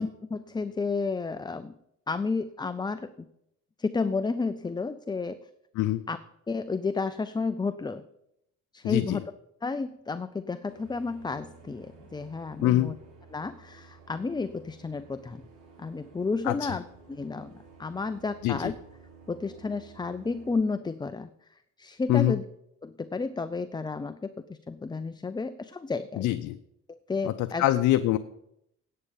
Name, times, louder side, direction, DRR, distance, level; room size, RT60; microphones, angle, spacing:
voice 1, 0.0-1.7 2.1-3.3 3.8-5.5 6.1-6.2 6.5-8.1 8.7-9.2 9.6-12.9 13.3-15.4 15.8-17.5 17.8-18.8 19.3-21.3 21.8-22.4 22.8-26.3 26.9-27.6, left 4 dB, 15° left, 12 dB, 0.4 m, -32 dB
voice 2, 8.8-9.2 12.6-12.9 16.4-16.7 18.4-18.7 22.1-22.4 26.2-26.6 27.2-28.2, left 14 dB, 85° left, 10 dB, 0.6 m, -24 dB
sound 1, 10.6-20.5, right 5 dB, 75° right, 5.3 m, -53 dB
11.0 x 8.7 x 5.3 m, 0.78 s
cardioid pair, 90°, 30 cm